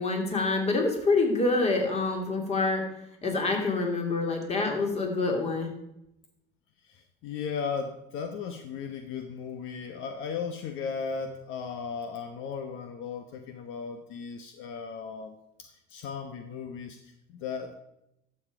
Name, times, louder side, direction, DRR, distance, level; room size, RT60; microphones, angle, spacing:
voice 1, 0.0-2.8 3.2-5.7, left 3 dB, 30° left, 2 dB, 2.8 m, -26 dB
voice 2, 6.8-17.7, left 6 dB, 70° left, 6 dB, 1.1 m, -36 dB
12.5 x 7.2 x 4.9 m, 0.83 s
cardioid pair, 120°, 21 cm